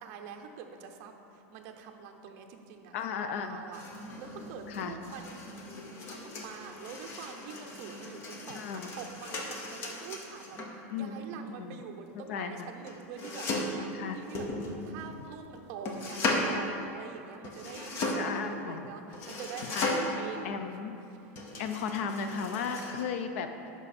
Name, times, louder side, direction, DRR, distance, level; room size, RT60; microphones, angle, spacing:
voice 1, 0.0-3.0 3.4-5.4 6.0-20.6, right 7 dB, 45° right, 4 dB, 0.8 m, -46 dB
voice 2, 2.9-3.6 4.7-4.9 8.5-8.9 10.9-11.2 11.6-11.8 12.3-12.7 13.9-14.2 18.1-18.9 19.7-19.9 20.4-20.9 21.6-23.7, left 6 dB, 65° left, 7 dB, 0.6 m, -35 dB
sound 1, 3.7-10.8 12.9-13.8 14.3-15.2 15.9-16.5 17.4-18.4 19.1-20.3 21.4-23.0, left 2 dB, 30° left, 0.9 m, -36 dB
10.5 x 6.1 x 4.3 m, 2.8 s
supercardioid pair, 170°, 8 cm